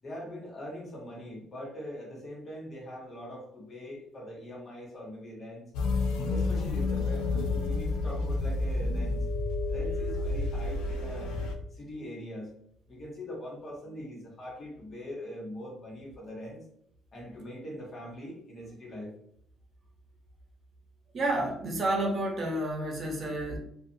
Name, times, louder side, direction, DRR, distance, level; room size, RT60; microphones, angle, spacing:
voice 1, 0.0-5.6 6.2-9.2 9.7-11.3 11.7-12.5 12.9-16.6 17.1-19.1, left 1 dB, 40° left, -3 dB, 1.3 m, -42 dB
sound 1, 5.7-11.5, left 3 dB, 85° left, 0.4 m, -30 dB
voice 2, 21.1-23.6, right 1 dB, 45° right, 1 dB, 0.8 m, -30 dB
2.5 x 2.3 x 2.6 m, 0.69 s
cardioid pair, 85°, 0 cm